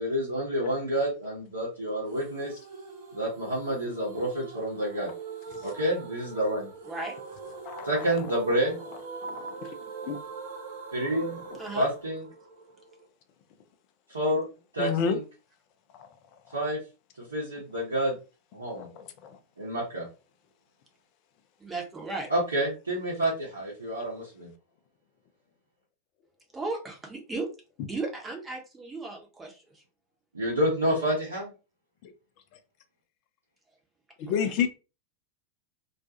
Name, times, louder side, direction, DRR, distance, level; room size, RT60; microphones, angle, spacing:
voice 1, 0.0-2.6 3.1-5.1 5.6-6.7 7.8-8.8 10.9-11.4 11.7-12.2 14.1-14.5 14.7-15.2 16.5-16.8 17.3-18.2 18.5-18.9 19.6-20.1 22.3-24.5 30.3-31.5, equal, 75° right, 0.9 m, -28 dB
sound 1, 2.1-13.1, right 4 dB, 50° right, 0.6 m, -42 dB
voice 2, 6.9-7.2 11.6-11.9 21.6-22.3 26.5-27.5 27.9-29.6 34.3-34.6, right 3 dB, 15° right, 0.8 m, -35 dB
voice 3, 9.2-9.7 10.0-10.2 14.8-15.2 18.7-19.4 34.2-34.7, left 7 dB, 40° left, 0.5 m, -29 dB
2.5 x 2.2 x 2.7 m
figure-of-eight pair, 90°, 0 cm